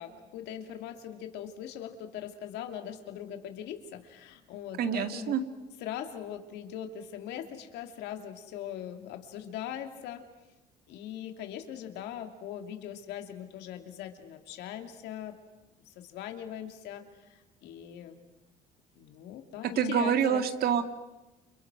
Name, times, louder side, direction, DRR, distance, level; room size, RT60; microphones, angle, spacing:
voice 1, 0.0-5.4 5.8-10.2 10.9-15.3 15.9-18.2 19.0-20.4, left 10 dB, 90° left, 6 dB, 2.8 m, -41 dB
voice 2, 4.8-5.4 19.6-20.8, right 8 dB, 65° right, 8 dB, 2.3 m, -27 dB
29.5 x 29.5 x 6.3 m, 1.0 s
cardioid pair, 110°, 17 cm